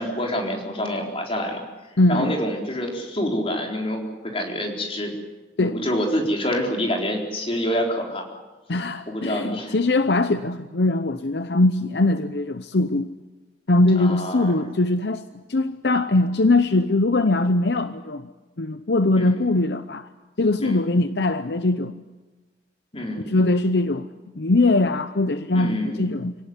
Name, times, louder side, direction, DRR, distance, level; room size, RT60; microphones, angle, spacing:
voice 1, 0.0-1.6 2.1-5.1 5.6-8.2 9.1-9.7 14.0-14.6 19.1-19.4 20.6-20.9 22.9-23.3 25.5-26.1, equal, 35° left, 1 dB, 4.2 m, -27 dB
voice 2, 2.0-2.4 5.6-5.8 8.7-13.1 13.7-18.3 18.6-20.1 20.4-22.0 23.3-24.1 24.4-26.4, left 2 dB, 65° left, 11 dB, 0.8 m, -21 dB
25.5 x 18.0 x 9.8 m, 1.2 s
head